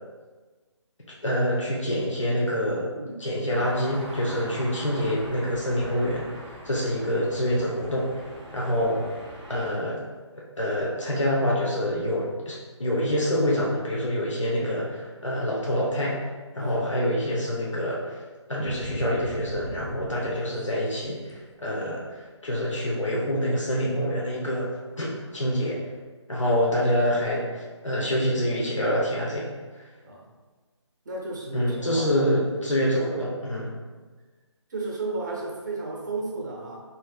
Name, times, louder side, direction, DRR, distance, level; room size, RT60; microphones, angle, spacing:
voice 1, 1.1-2.9 3.2-9.0 9.5-10.0 10.6-16.2 16.5-18.2 18.5-22.0 22.4-24.7 25.0-25.8 26.3-29.5 31.5-33.7, equal, 85° left, -5 dB, 0.9 m, -26 dB
sound 1, 3.5-9.7, right 1 dB, 15° right, 0.4 m, -42 dB
sound 2, 18.6-20.6 21.0-21.5, right 1 dB, 80° right, 0.7 m, -38 dB
voice 2, 31.0-33.2 34.7-36.8, right 2 dB, 40° right, -2 dB, 0.8 m, -34 dB
4.2 x 3.4 x 2.3 m, 1.4 s
figure-of-eight pair, 155°, 15 cm